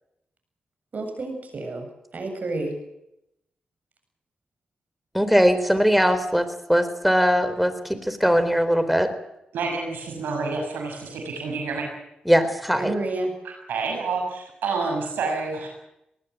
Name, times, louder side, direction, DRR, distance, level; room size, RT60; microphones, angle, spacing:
voice 1, 0.9-1.9 2.1-2.7 12.8-13.3, right 2 dB, 55° right, 5 dB, 7.7 m, -29 dB
voice 2, 5.1-9.1 12.3-12.9, equal, ahead, 11 dB, 3.8 m, -20 dB
voice 3, 9.5-11.9 13.4-15.7, right 4 dB, 90° right, 2 dB, 6.3 m, -28 dB
19.5 x 19.0 x 9.4 m, 0.84 s
cardioid pair, 50°, 3 cm